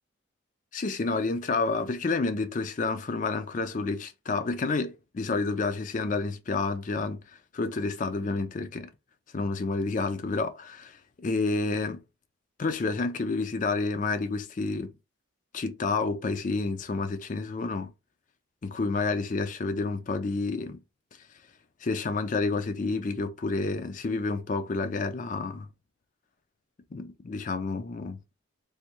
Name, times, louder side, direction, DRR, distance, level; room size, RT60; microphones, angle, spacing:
voice 1, 0.7-8.9 9.3-12.0 12.6-14.9 15.5-17.9 18.6-20.8 21.8-25.7 26.9-28.2, left 3 dB, 40° left, 0.4 m, -29 dB
3.5 x 2.5 x 3.0 m
head